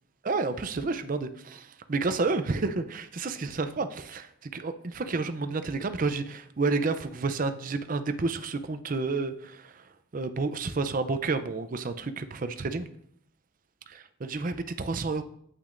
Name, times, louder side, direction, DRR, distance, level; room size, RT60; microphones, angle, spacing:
voice 1, 0.2-9.7 10.1-12.9 13.9-15.2, right 3 dB, 40° right, 10 dB, 0.5 m, -30 dB
8.8 x 8.2 x 2.5 m, 0.68 s
head